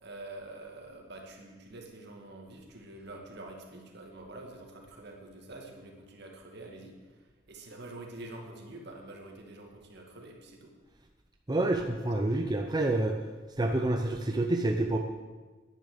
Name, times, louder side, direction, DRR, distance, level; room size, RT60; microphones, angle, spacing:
voice 1, 0.0-10.7, right 2 dB, 60° right, 1 dB, 2.2 m, -46 dB
voice 2, 11.5-13.2 13.6-15.0, right 2 dB, 20° right, 3 dB, 0.7 m, -28 dB
10.5 x 10.5 x 6.8 m, 1.3 s
head